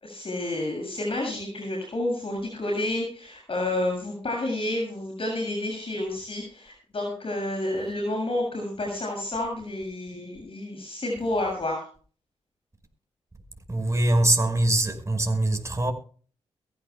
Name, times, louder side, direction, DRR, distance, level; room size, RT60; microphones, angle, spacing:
voice 1, 0.0-11.8, left 1 dB, 50° left, 7.5 m, -30 dB
voice 2, 13.7-15.9, right 1 dB, 25° right, 5.3 m, -23 dB
23.5 x 15.0 x 2.3 m
supercardioid pair, 45°, 12 cm